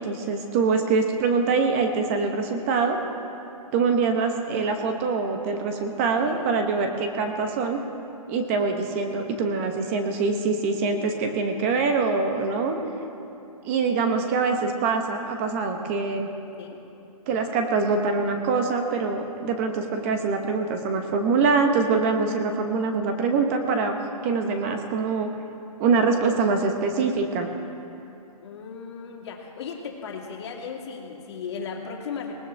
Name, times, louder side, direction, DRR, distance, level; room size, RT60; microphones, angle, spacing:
voice 1, 0.0-3.0 3.7-7.8 8.3-12.8 13.6-16.3 17.3-23.9 24.2-25.3 25.8-27.5, right 4 dB, 20° right, 5 dB, 0.9 m, -24 dB
voice 2, 28.4-32.3, left 6 dB, 45° left, 0 dB, 2.3 m, -36 dB
19.5 x 19.5 x 3.4 m, 2.8 s
hypercardioid pair, 165°, 19 cm